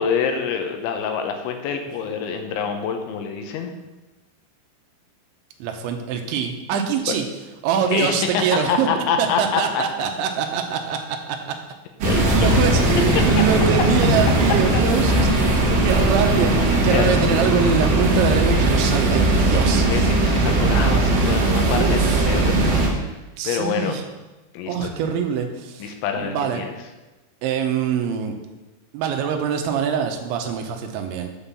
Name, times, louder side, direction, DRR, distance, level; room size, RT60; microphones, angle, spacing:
voice 1, 0.0-3.7 7.1-7.2 7.9-8.4 8.7-9.8 12.0-12.5 15.1-15.8 16.7-17.0 19.7-22.6 23.1-23.2 23.4-23.9 24.5-24.9 25.8-26.7, left 6 dB, 80° left, 5 dB, 3.2 m, -26 dB
voice 2, 5.6-7.2 7.6-8.9 9.2-11.6 12.1-15.5 15.8-20.1 21.8-22.2 23.4-24.0 24.7-26.7 27.4-28.4 28.9-31.3, right 7 dB, 80° right, 5 dB, 3.0 m, -24 dB
sound 1, 12.0-22.9, right 2 dB, 55° right, 1.8 m, -19 dB
8.2 x 5.7 x 6.9 m, 1.1 s
omnidirectional pair, 5.6 m